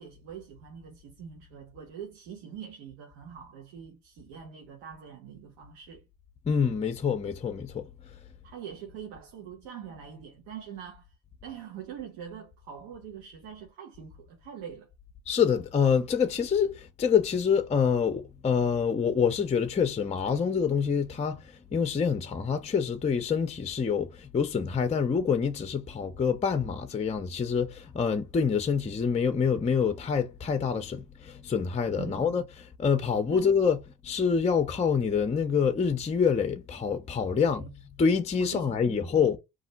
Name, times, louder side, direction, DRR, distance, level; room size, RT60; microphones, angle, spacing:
voice 1, 0.0-6.0 8.4-11.1 11.4-14.9 32.0-32.5 33.3-33.5 37.3-37.7 38.4-39.1, right 8 dB, 85° right, 0.9 m, -44 dB
voice 2, 6.5-7.9 15.3-21.4 21.7-37.7 38.0-39.4, left 6 dB, 20° left, 0.5 m, -26 dB
2.5 x 2.0 x 3.8 m
supercardioid pair, 70°, 36 cm